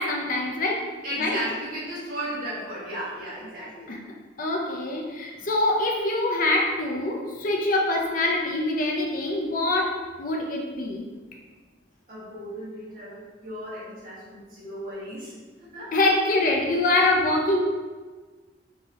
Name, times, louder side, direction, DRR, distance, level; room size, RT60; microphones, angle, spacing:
voice 1, 0.0-0.9 1.2-1.4 3.9-4.0 4.4-11.0 15.9-17.6, left 2 dB, 45° left, 0 dB, 0.5 m, -24 dB
voice 2, 1.0-3.9 12.1-15.3 15.6-15.9, equal, 50° right, -9 dB, 1.5 m, -35 dB
3.9 x 2.7 x 2.8 m, 1.4 s
head